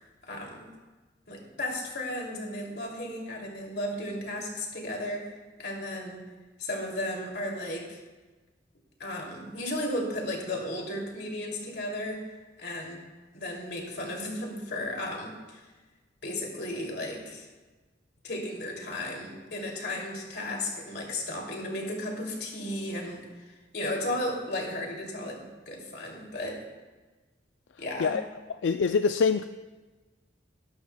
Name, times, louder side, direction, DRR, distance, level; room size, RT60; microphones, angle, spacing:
voice 1, 0.2-0.7 1.3-6.3 6.6-8.0 9.0-12.3 12.6-13.0 13.3-15.7 16.2-17.5 18.2-26.7 27.8-28.2, left 1 dB, 65° left, 0 dB, 2.5 m, -34 dB
voice 2, 28.6-29.4, left 5 dB, 90° left, 9 dB, 0.4 m, -24 dB
19.5 x 11.5 x 2.2 m, 1.2 s
head